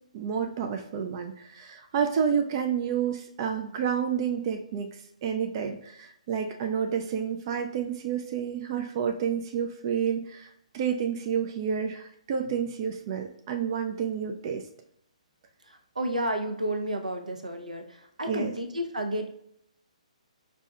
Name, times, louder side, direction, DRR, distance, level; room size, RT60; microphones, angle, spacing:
voice 1, 0.1-14.7 18.3-18.5, right 7 dB, 35° right, 4 dB, 0.4 m, -30 dB
voice 2, 15.7-19.3, right 1 dB, 80° right, 5 dB, 0.7 m, -31 dB
5.2 x 2.7 x 2.2 m, 0.72 s
figure-of-eight pair, 130°, 4 cm